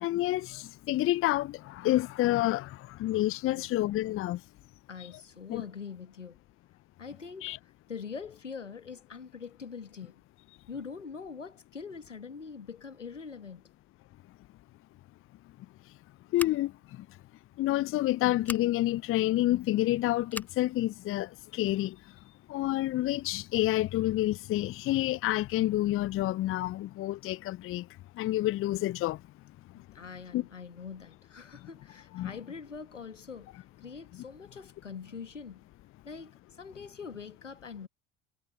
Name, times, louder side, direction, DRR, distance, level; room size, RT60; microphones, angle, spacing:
voice 1, 0.0-4.4 5.5-5.6 7.4-7.6 16.3-16.7 17.6-21.9 22.5-27.8 28.2-29.2 30.3-30.4 32.1-32.3, left 16 dB, 35° left, 0.8 m, -28 dB
voice 2, 4.9-6.4 7.0-7.6 7.9-10.2 10.7-13.7 29.7-35.6 36.0-37.9, left 5 dB, 85° left, 1.6 m, -44 dB
Scissors, 16.3-16.9 18.4-18.7 20.3-20.6, left 2 dB, 5° left, 0.6 m, -40 dB
figure-of-eight pair, 65°, 36 cm